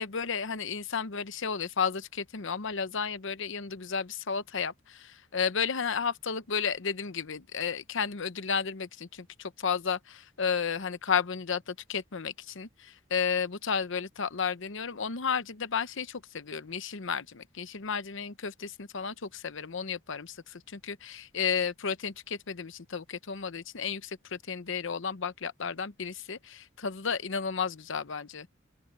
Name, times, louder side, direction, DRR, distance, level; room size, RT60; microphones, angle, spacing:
voice 1, 0.0-28.5, left 6 dB, 65° left, 0.9 m, -33 dB
open air
head